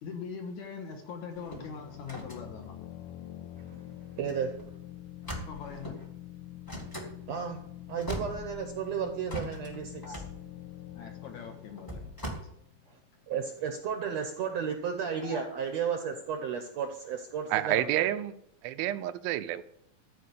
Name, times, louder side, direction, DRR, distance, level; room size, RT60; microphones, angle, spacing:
voice 1, 0.0-2.7 5.5-6.0 10.0-10.3 10.9-12.0 12.3-12.5 15.2-15.5, left 5 dB, 60° left, 2.5 m, -42 dB
sound 1, 1.3-3.8 4.2-4.3 4.6-4.8 5.2-6.1 6.7-7.1 7.7-7.8 7.9-8.9 9.3-12.3, right 1 dB, 15° left, 0.8 m, -41 dB
sound 2, 1.6-13.1, left 13 dB, 80° left, 2.2 m, -46 dB
voice 2, 3.6-4.5 7.3-7.6 7.9-10.2 12.9-13.0 13.3-18.1, right 7 dB, 70° right, 1.7 m, -34 dB
voice 3, 17.5-18.3 18.6-19.6, right 13 dB, 85° right, 2.4 m, -29 dB
13.5 x 5.0 x 8.3 m
omnidirectional pair, 4.1 m